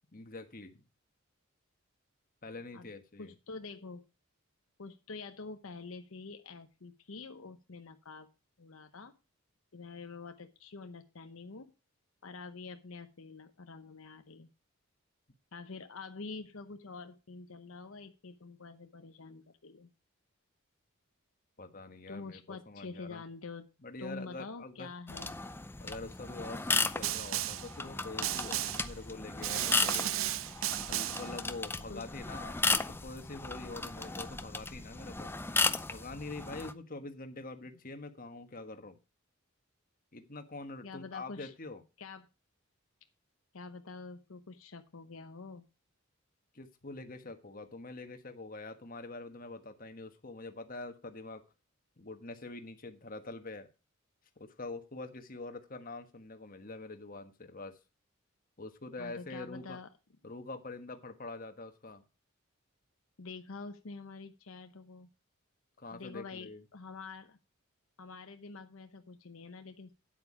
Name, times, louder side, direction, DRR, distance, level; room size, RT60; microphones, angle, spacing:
voice 1, 0.1-0.8 2.4-3.3 21.6-23.2 23.8-24.9 25.8-30.1 30.9-35.3 35.9-39.0 40.1-41.8 46.5-51.4 52.0-53.7 54.4-57.8 58.6-59.8 60.2-62.0 65.8-66.6, left 2 dB, 40° left, 7 dB, 1.4 m, -45 dB
voice 2, 3.2-4.0 4.8-8.3 8.6-9.2 9.7-11.7 12.2-14.5 15.5-19.9 22.1-23.7 24.0-25.4 31.9-32.0 40.8-41.5 42.0-42.3 43.5-45.7 59.0-59.9 63.2-65.1 65.9-67.4 68.0-69.9, left 4 dB, 80° left, 8 dB, 0.9 m, -46 dB
sound 1, 25.1-36.7, left 3 dB, 10° left, 0.5 m, -35 dB
Snare drum, 27.0-27.7 28.2-28.9 29.4-31.3, right 13 dB, 70° right, 0.5 m, -34 dB
9.3 x 8.3 x 4.9 m, 0.30 s
head